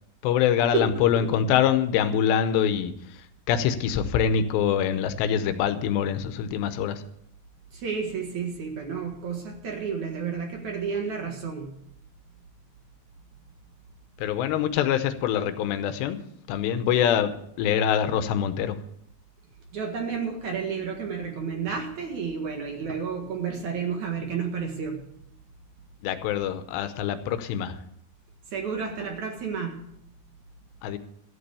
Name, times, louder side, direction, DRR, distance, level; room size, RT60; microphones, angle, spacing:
voice 1, 0.2-2.9 3.5-7.0 14.2-16.2 16.5-17.3 17.6-18.8 26.0-27.8 30.8-31.0, left 9 dB, 75° left, 10 dB, 2.8 m, -24 dB
voice 2, 7.7-11.7 19.7-25.0 28.5-29.8, right 6 dB, 55° right, 2 dB, 2.3 m, -31 dB
14.0 x 8.4 x 6.9 m, 0.72 s
omnidirectional pair, 5.3 m